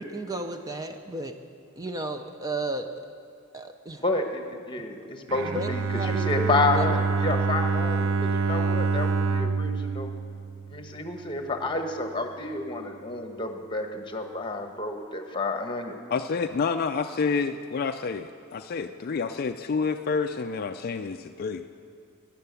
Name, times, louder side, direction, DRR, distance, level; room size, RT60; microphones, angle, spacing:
voice 1, 0.1-1.3 1.8-2.9 3.5-4.0 5.5-6.9, right 2 dB, 15° right, 6 dB, 0.5 m, -33 dB
voice 2, 4.0-10.1 10.7-16.0, left 3 dB, 20° left, 5 dB, 1.2 m, -30 dB
Bowed string instrument, 5.3-11.3, right 4 dB, 65° right, 0.6 m, -26 dB
voice 3, 16.1-21.7, left 5 dB, 45° left, 7 dB, 0.4 m, -28 dB
12.5 x 10.5 x 8.2 m, 2.6 s
head